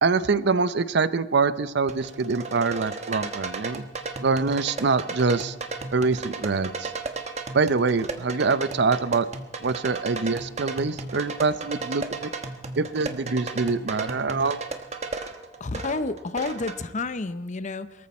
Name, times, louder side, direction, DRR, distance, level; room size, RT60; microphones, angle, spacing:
voice 1, 0.0-3.8 4.2-5.5 5.9-6.9 7.5-9.3 9.6-12.3 12.8-14.6, right 4 dB, 65° right, 14 dB, 0.6 m, -24 dB
sound 1, 1.9-16.8, right 3 dB, 40° right, 1.2 m, -35 dB
voice 2, 15.6-18.1, left 3 dB, 40° left, 13 dB, 0.7 m, -30 dB
23.5 x 14.0 x 4.3 m, 1.0 s
head